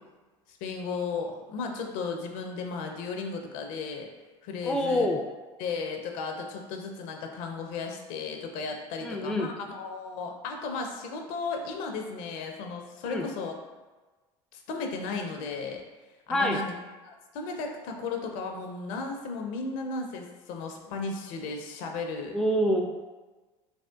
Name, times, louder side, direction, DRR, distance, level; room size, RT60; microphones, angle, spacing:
voice 1, 0.5-4.1 4.4-5.1 5.6-13.5 14.5-15.8 16.3-16.7 17.0-22.4, left 4 dB, 65° left, 3 dB, 0.5 m, -35 dB
voice 2, 4.6-5.2 9.0-9.5 13.1-13.2 16.3-16.6 22.3-23.1, equal, 5° left, 2 dB, 0.3 m, -26 dB
3.5 x 2.4 x 2.3 m, 1.2 s
hypercardioid pair, 80°, 15 cm